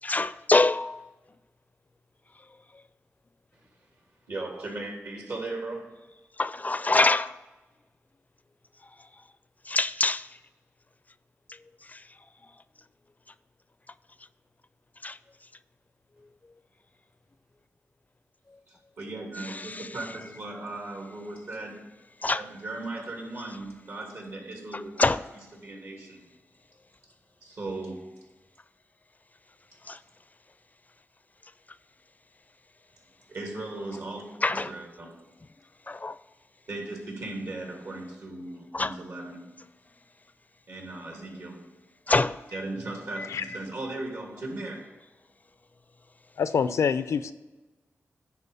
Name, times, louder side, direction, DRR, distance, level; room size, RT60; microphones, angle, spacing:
voice 1, 0.0-1.1 6.4-7.3 9.7-10.3 11.9-12.0 15.0-15.2 19.5-19.9 22.2-22.4 25.0-25.2 29.9-30.0 34.4-34.7 35.9-36.1 38.7-38.9 42.1-42.4, left 3 dB, 30° left, 0.4 m, -25 dB
voice 2, 4.3-6.0 18.7-21.9 22.4-25.1 25.6-26.3 27.4-28.2 33.3-35.2 36.7-39.5 40.7-41.7 42.5-45.0, right 2 dB, 75° right, 2.8 m, -37 dB
voice 3, 46.4-47.3, left 6 dB, 90° left, 0.5 m, -26 dB
10.5 x 4.0 x 7.0 m
cardioid pair, 55°, 5 cm